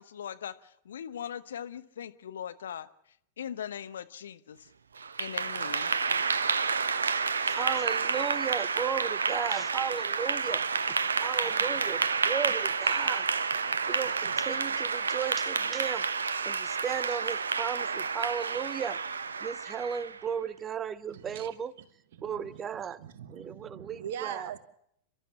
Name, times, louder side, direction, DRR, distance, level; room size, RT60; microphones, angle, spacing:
voice 1, 0.0-2.9 3.4-4.7 5.2-5.9, left 9 dB, 65° left, 12 dB, 1.0 m, -40 dB
Clapping / Applause, 5.0-20.2, right 5 dB, 70° right, 0.8 m, -30 dB
voice 2, 7.5-10.6 10.9-13.3 13.9-16.0 16.4-19.0 19.4-21.7 22.2-23.0 23.3-24.5, right 7 dB, 25° right, 19 dB, 0.7 m, -35 dB
voice 3, 21.1-21.9 22.1-24.6, right 10 dB, 55° right, 13 dB, 1.4 m, -42 dB
30.0 x 12.5 x 7.3 m, 0.73 s
figure-of-eight pair, 90°, 0 cm